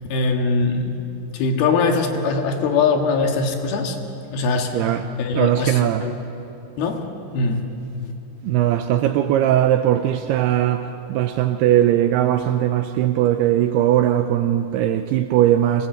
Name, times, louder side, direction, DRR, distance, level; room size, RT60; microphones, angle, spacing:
voice 1, 0.1-1.0 1.3-4.0 4.3-6.1 6.8-7.0 7.3-7.7, left 4 dB, 60° left, 3.3 m, -22 dB
voice 2, 5.4-6.0 8.4-15.9, right 12 dB, 85° right, 2.3 m, -19 dB
25.5 x 21.5 x 7.9 m
omnidirectional pair, 5.4 m